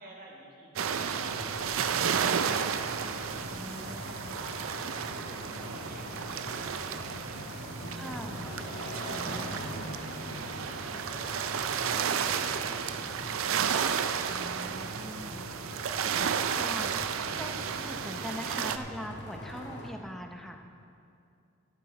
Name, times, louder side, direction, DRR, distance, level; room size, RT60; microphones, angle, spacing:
voice 1, 0.0-4.2 4.6-10.6, right 1 dB, 45° right, -3 dB, 1.6 m, -54 dB
sound 1, 0.7-19.9, equal, 55° left, 1.7 m, -42 dB
sound 2, 0.8-18.8, right 7 dB, 80° right, 0.4 m, -32 dB
voice 2, 3.5-4.4 7.9-8.4 9.1-10.0 14.3-15.5 16.6-16.9 17.3-20.6, equal, ahead, 3 dB, 0.6 m, -42 dB
12.5 x 10.5 x 3.9 m, 2.5 s
head